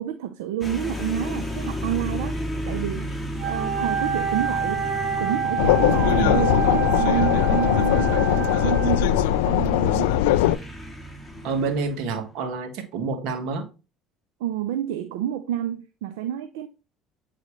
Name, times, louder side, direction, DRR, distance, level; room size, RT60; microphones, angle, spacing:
voice 1, 0.0-2.4 2.7-3.1 3.4-4.8 5.2-10.1 14.4-16.7, right 10 dB, 85° right, 0.5 m, -29 dB
sound 1, 0.6-12.3, equal, 10° left, 1.9 m, -33 dB
Wind instrument woodwind instrument, 3.4-9.3, right 6 dB, 45° right, 1.7 m, -27 dB
sound 2, 5.6-10.6, left 12 dB, 85° left, 0.3 m, -20 dB
voice 2, 11.4-13.7, right 4 dB, 70° right, 1.5 m, -28 dB
8.3 x 4.0 x 3.1 m
supercardioid pair, 85°, 0 cm